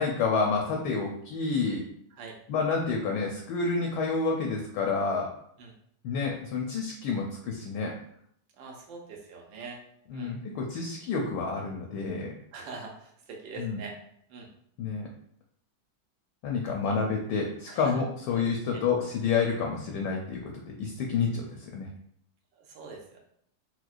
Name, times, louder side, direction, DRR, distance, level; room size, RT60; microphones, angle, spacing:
voice 1, 0.0-1.8 2.5-5.3 6.0-7.9 10.1-12.3 13.6-13.8 14.8-15.1 16.4-20.4 20.7-21.9, left 4 dB, 75° left, 0 dB, 1.1 m, -29 dB
voice 2, 8.6-9.8 10.1-10.4 12.5-13.9 14.3-14.5 16.7-17.0 17.7-18.0 18.3-18.4 18.7-18.8 22.6-23.2, right 4 dB, 75° right, 0 dB, 1.3 m, -43 dB
4.4 x 2.1 x 2.3 m, 0.69 s
omnidirectional pair, 2.1 m